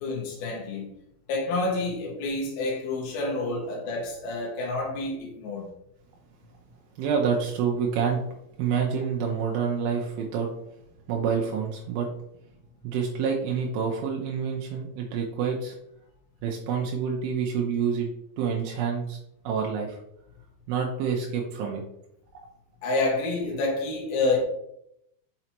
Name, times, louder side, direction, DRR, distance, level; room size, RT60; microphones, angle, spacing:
voice 1, 0.0-0.9 1.3-5.7 22.8-24.4, left 2 dB, 85° left, -2 dB, 2.9 m, -28 dB
voice 2, 7.0-8.2 8.6-10.5 11.1-12.1 12.8-15.8 16.4-18.1 18.4-19.2 19.4-20.0 20.7-21.8, right 6 dB, 85° right, 0 dB, 2.6 m, -27 dB
5.9 x 5.5 x 3.0 m, 0.79 s
omnidirectional pair, 4.1 m